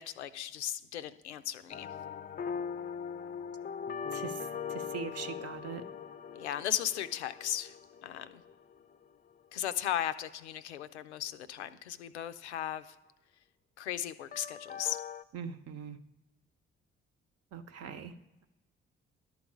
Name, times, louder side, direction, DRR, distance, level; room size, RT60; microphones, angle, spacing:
voice 1, 0.0-1.9 6.4-7.7 8.0-8.4 9.5-12.8 13.8-15.0, left 11 dB, 80° left, 11 dB, 0.5 m, -36 dB
sound 1, 1.7-8.9 14.3-15.2, left 7 dB, 25° left, 0.5 m, -41 dB
voice 2, 4.1-5.8 15.3-16.0 17.5-18.1, right 6 dB, 45° right, 9 dB, 0.8 m, -41 dB
11.5 x 4.0 x 7.2 m, 1.1 s
figure-of-eight pair, 40°, 33 cm